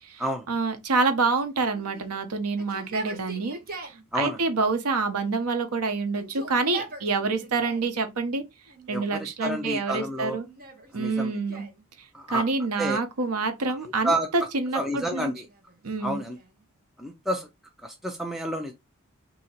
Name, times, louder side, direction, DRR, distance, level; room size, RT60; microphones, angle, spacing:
voice 1, 0.5-8.4 8.9-10.4 10.9-11.6 12.3-15.3 15.8-16.2, right 4 dB, 85° right, 0.8 m, -27 dB
Yell, 1.6-4.0 4.9-5.7 6.0-7.9 8.7-9.3 10.0-11.8 13.2-14.1 14.9-16.6, right 2 dB, 40° right, 1.0 m, -43 dB
voice 2, 8.9-10.4 10.9-11.4 12.1-12.4 12.8-13.0 13.8-14.3 14.7-15.5 16.0-16.4 17.0-17.5 17.8-18.7, right 1 dB, ahead, 0.4 m, -29 dB
2.8 x 2.7 x 4.2 m
head